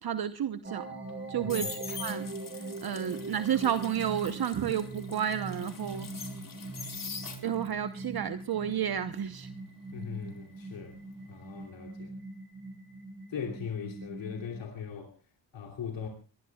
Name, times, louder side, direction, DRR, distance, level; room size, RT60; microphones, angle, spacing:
voice 1, 0.0-0.9 1.3-2.3 2.8-6.1 7.4-9.5, right 9 dB, 55° right, 1.0 m, -31 dB
sound 1, 0.6-14.6, right 3 dB, 25° right, 7.8 m, -42 dB
sound 2, 1.1-7.8 8.1-11.0 11.3-11.6, left 5 dB, 45° left, 4.2 m, -43 dB
voice 2, 1.4-1.7 6.4-6.5 9.9-11.0 11.3-12.2 13.3-15.1 15.5-16.1, left 7 dB, 75° left, 3.0 m, -39 dB
22.5 x 20.5 x 2.3 m
cardioid pair, 60°, 45 cm